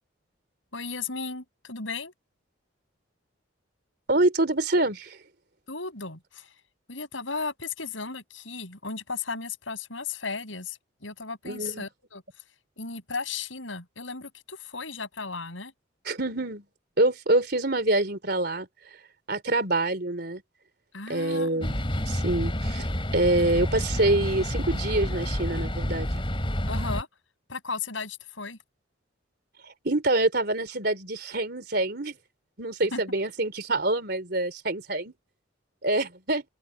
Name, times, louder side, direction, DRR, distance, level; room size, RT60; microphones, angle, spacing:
voice 1, 0.7-2.1 5.7-6.5 6.9-12.2 12.8-15.7 20.9-21.7 26.7-27.1 27.5-28.6 32.9-33.0, left 4 dB, 80° left, 7.9 m, -35 dB
voice 2, 4.1-5.2 11.4-11.8 16.0-16.6 17.0-18.7 19.3-20.4 21.1-22.9 23.1-26.2 29.6-32.2 32.6-35.1 35.8-36.4, right 2 dB, 55° right, 3.9 m, -26 dB
sound 1, 21.6-27.0, equal, 25° left, 3.4 m, -29 dB
open air
head